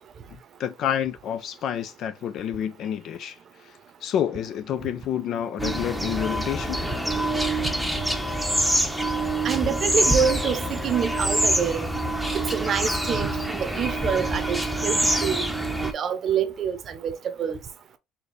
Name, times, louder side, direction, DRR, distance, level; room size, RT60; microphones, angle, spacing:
voice 1, 0.3-3.4 3.6-3.7 4.0-6.8, left 9 dB, 60° left, 0.5 m, -29 dB
sound 1, 5.6-15.9, right 1 dB, ahead, 0.8 m, -25 dB
voice 2, 9.4-11.9 12.3-15.5 15.9-17.6, right 7 dB, 45° right, 0.8 m, -26 dB
4.4 x 2.7 x 3.2 m
cardioid pair, 110°, 0 cm